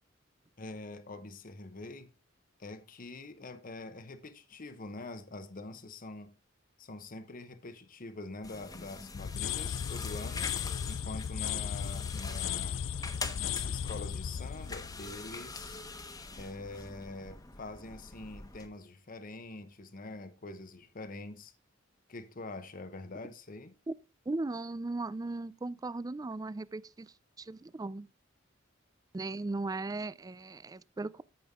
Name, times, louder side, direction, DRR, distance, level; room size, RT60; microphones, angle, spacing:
voice 1, 0.6-2.1 2.6-6.3 6.8-10.5 10.9-12.8 13.4-15.8 16.3-21.5 22.1-23.7, left 2 dB, 45° left, 0.9 m, -45 dB
sound 1, 8.4-18.7, left 3 dB, 20° left, 1.1 m, -44 dB
sound 2, 9.1-16.0, left 8 dB, 70° left, 0.5 m, -36 dB
voice 2, 24.3-28.1 29.1-31.2, right 2 dB, 20° right, 0.3 m, -37 dB
13.5 x 5.3 x 3.6 m
head